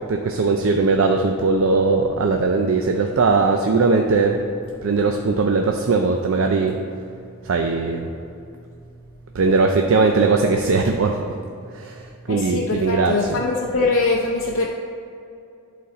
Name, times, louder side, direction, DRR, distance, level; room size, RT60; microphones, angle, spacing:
voice 1, 0.1-4.4 4.8-6.8 7.5-8.1 9.4-11.2 11.8-11.9 12.3-13.4, right 3 dB, 70° right, 4 dB, 0.4 m, -19 dB
voice 2, 12.3-14.7, left 3 dB, 70° left, -2 dB, 0.6 m, -22 dB
11.0 x 4.1 x 4.2 m, 2.6 s
head